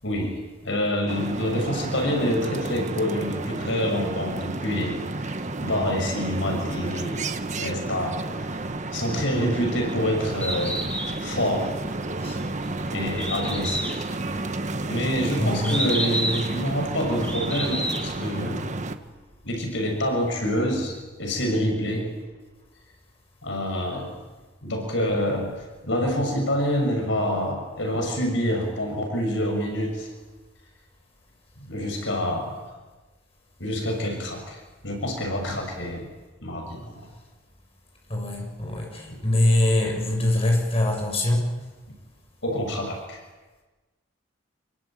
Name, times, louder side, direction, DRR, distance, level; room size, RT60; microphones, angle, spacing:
voice 1, 0.0-5.3 5.6-7.2 7.6-8.6 8.9-10.8 11.2-11.7 12.9-14.1 14.9-18.7 19.4-22.1 23.4-24.1 24.6-25.5 25.8-30.1 31.7-32.6 33.6-36.1 36.4-37.1 39.1-39.2 42.4-43.2, equal, 70° left, 2 dB, 6.6 m, -27 dB
sound 1, 1.1-19.0, right 2 dB, 40° right, 1.4 m, -31 dB
Bird, 10.3-18.2, equal, 5° left, 7.0 m, -32 dB
voice 2, 15.4-15.8 38.1-41.5, left 1 dB, 30° left, 0 dB, 7.5 m, -23 dB
26.5 x 22.5 x 9.0 m, 1.2 s
head